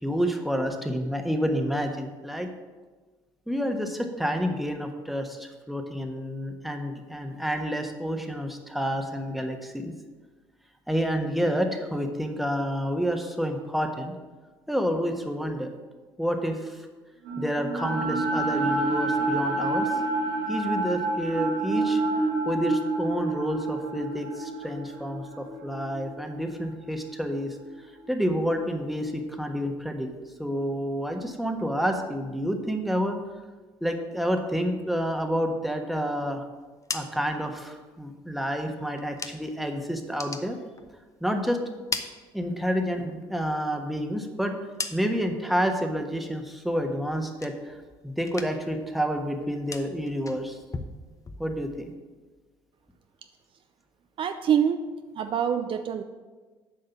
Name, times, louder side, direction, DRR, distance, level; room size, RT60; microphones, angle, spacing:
voice 1, 0.0-2.5 3.5-9.9 10.9-14.1 14.7-15.7 16.2-16.8 17.4-19.9 20.5-27.6 28.1-30.1 30.4-33.2 33.8-36.4 36.9-40.6 41.2-41.6 42.3-44.5 44.9-50.6 51.4-51.9, equal, ahead, 4 dB, 1.4 m, -29 dB
sound 1, 17.2-27.4, right 2 dB, 70° right, 2.4 m, -28 dB
sound 2, 36.6-39.7 40.0-41.3 41.6-42.9 43.3-45.4 45.8-46.3 46.6-47.9 48.2-48.8 49.1-51.9, left 4 dB, 30° left, 0.9 m, -40 dB
voice 2, 54.2-54.9 55.1-56.0, right 8 dB, 50° right, 8 dB, 0.6 m, -25 dB
7.7 x 5.3 x 7.2 m, 1.3 s
hypercardioid pair, 60°, 11 cm